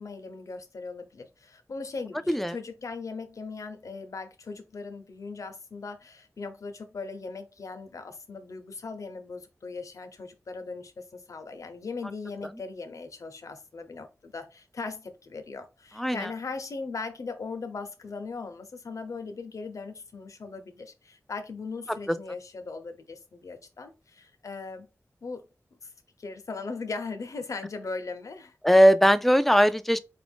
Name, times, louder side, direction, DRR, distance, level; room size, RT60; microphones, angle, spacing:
voice 1, 0.0-24.9 25.2-25.5 25.8-25.9 26.2-28.5, left 4 dB, 75° left, 0.7 m, -39 dB
voice 2, 16.0-16.3 28.6-30.0, equal, 5° left, 0.4 m, -19 dB
4.3 x 2.5 x 3.5 m
wide cardioid pair, 80°, 5 cm